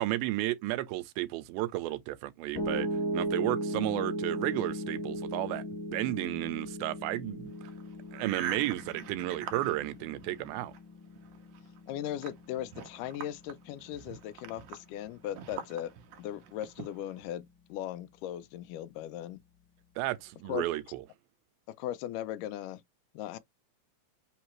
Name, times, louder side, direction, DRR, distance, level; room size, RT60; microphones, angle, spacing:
voice 1, 0.0-2.9 3.1-5.6 5.9-7.7 8.1-10.7 20.0-21.0, right 16 dB, 90° right, 2.5 m, -33 dB
Piano, 2.6-14.7, equal, 40° left, 2.2 m, -37 dB
sound 1, 7.5-10.8 11.1-17.3, right 8 dB, 75° right, 2.0 m, -45 dB
voice 2, 11.9-15.9 16.2-19.4 20.5-20.7 21.8-22.8 23.1-23.4, left 12 dB, 80° left, 2.0 m, -38 dB
5.7 x 2.7 x 3.0 m
omnidirectional pair, 4.2 m